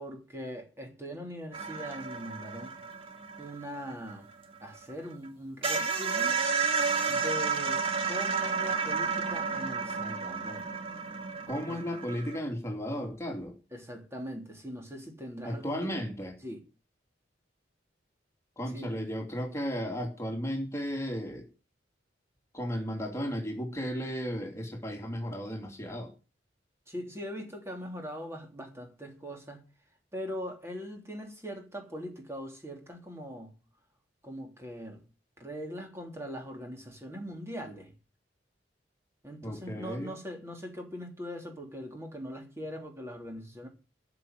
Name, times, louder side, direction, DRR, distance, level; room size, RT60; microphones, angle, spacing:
voice 1, 0.0-2.8 3.4-4.3 4.6-6.4 7.1-10.7 11.7-11.9 13.7-15.9 16.4-16.6 18.7-18.9 26.9-29.6 30.1-33.6 34.2-35.0 35.4-37.9 39.2-43.7, equal, 15° right, 3.4 m, -41 dB
sound 1, 1.5-4.9 5.2-5.3 5.6-12.4, right 5 dB, 30° right, 2.0 m, -31 dB
voice 2, 11.5-13.6 15.4-16.3 18.6-21.5 22.5-26.1 39.4-40.1, equal, 15° left, 3.0 m, -34 dB
14.0 x 6.1 x 9.4 m
head